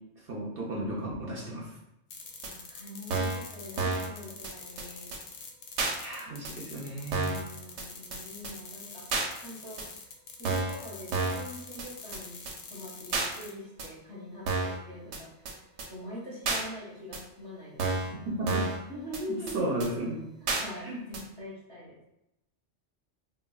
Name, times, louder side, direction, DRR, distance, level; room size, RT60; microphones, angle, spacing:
voice 1, 0.2-1.8 6.0-7.3 18.4-18.6 19.5-20.2 20.9-21.0, right 1 dB, 60° right, -4 dB, 0.7 m, -34 dB
sound 1, 2.1-13.5, left 4 dB, 60° left, 0.6 m, -46 dB
voice 2, 2.4-5.1 7.2-9.1 9.4-9.8 10.4-15.6 15.9-18.2 18.9-19.8 20.6-22.0, equal, 25° left, -9 dB, 0.6 m, -43 dB
sound 2, 2.4-2.5 3.1-3.4 3.8-4.1 4.4-4.5 4.8-4.9 5.1-5.2 5.8-5.9 6.4-6.5 7.1-7.4 7.8-7.9 8.1-8.2 8.4-8.5 9.1-9.3 9.8-9.9 10.4-10.8 11.1-11.5 11.8-11.9 12.1-12.2 12.5-12.6 13.1-13.3 13.8-13.9 14.5-14.8 15.1-15.2 15.5-15.6 15.8-15.9 16.5-16.6 17.1-17.2 17.8-18.1 18.5-18.8 19.1-19.2 19.5-19.6 19.8-19.9 20.5-20.6 21.1-21.2, right 3 dB, 85° right, 0.9 m, -30 dB
3.3 x 2.3 x 2.3 m, 0.86 s
omnidirectional pair, 1.2 m